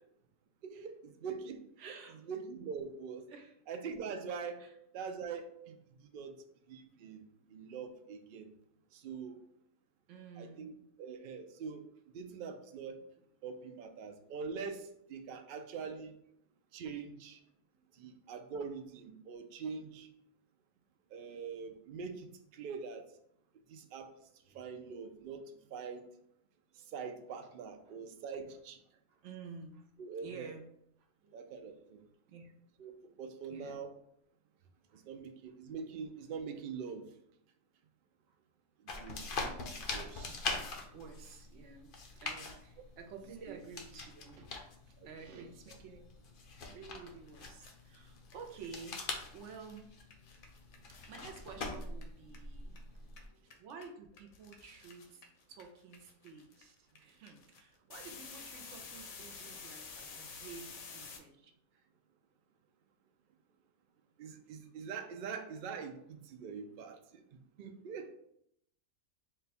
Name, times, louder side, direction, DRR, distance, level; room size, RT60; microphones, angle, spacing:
voice 1, 0.6-1.6 2.3-3.3 3.7-4.6 4.9-7.2 7.5-8.5 8.9-9.4 10.4-10.7 11.0-11.8 12.1-13.0 13.4-16.1 16.7-17.4 17.9-20.1 21.1-23.1 23.7-24.1 24.5-26.1 26.7-28.8 30.0-30.5 31.3-32.0 32.8-33.9 34.9-37.1 38.8-40.3 43.5-43.6 45.3-45.4 64.2-68.1, right 5 dB, 85° right, 5 dB, 0.4 m, -44 dB
voice 2, 1.8-2.2 3.3-3.6 4.6-4.8 7.0-7.5 10.1-10.8 13.0-13.3 14.0-14.3 17.7-18.0 23.7-24.0 24.4-24.7 26.7-26.9 27.3-27.5 27.9-28.0 29.1-30.7 31.0-31.8 32.3-32.6 33.5-33.8 34.6-35.0 38.3-38.4 40.3-40.4 40.9-46.0 46.6-50.0 51.1-52.8 53.6-61.9, right 5 dB, 65° right, 4 dB, 0.9 m, -52 dB
sound 1, 38.9-53.3, left 3 dB, 55° left, 0.6 m, -44 dB
sound 2, 47.0-47.1 47.3-52.8 53.1-61.2, left 5 dB, 75° left, 1.2 m, -51 dB
4.2 x 2.2 x 4.1 m, 0.73 s
omnidirectional pair, 1.5 m